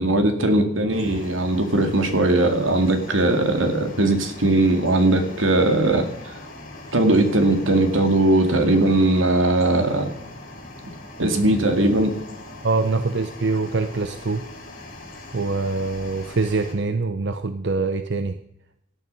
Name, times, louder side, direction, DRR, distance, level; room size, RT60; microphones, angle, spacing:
voice 1, 0.0-6.1 6.9-10.1 11.2-12.1, right 2 dB, 85° right, 6 dB, 2.2 m, -19 dB
sound 1, 0.9-16.7, left 2 dB, 45° left, 5.5 m, -41 dB
voice 2, 12.6-14.4 15.3-18.4, right 3 dB, 60° right, 9 dB, 0.7 m, -24 dB
17.0 x 9.7 x 5.4 m, 0.76 s
head